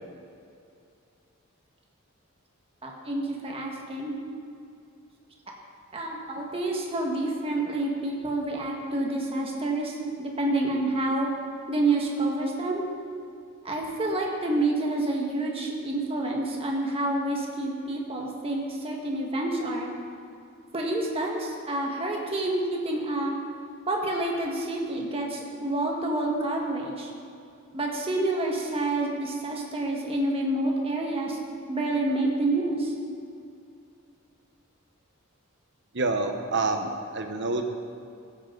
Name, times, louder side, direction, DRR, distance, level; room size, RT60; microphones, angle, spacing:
voice 1, 2.8-4.2 5.9-9.9 10.2-11.3 11.7-12.9 13.7-19.9 20.7-23.3 23.9-27.1 27.7-31.4 31.7-32.9, right 2 dB, 30° right, -1 dB, 1.7 m, -28 dB
voice 2, 35.9-37.6, right 3 dB, 55° right, 5 dB, 1.0 m, -27 dB
16.5 x 9.8 x 4.0 m, 2.4 s
head